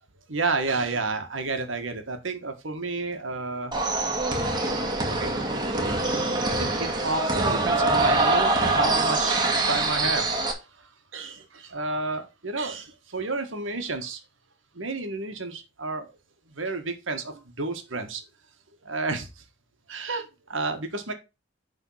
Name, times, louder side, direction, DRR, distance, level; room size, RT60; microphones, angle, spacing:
voice 1, 0.3-3.7 5.2-5.3 6.6-14.2 14.7-16.2 16.5-18.2 18.8-19.4 19.9-21.1, right 3 dB, 75° right, 1.6 m, -31 dB
sound 1, 3.7-10.5, right 2 dB, 20° right, 1.9 m, -24 dB
10.5 x 3.9 x 5.7 m
head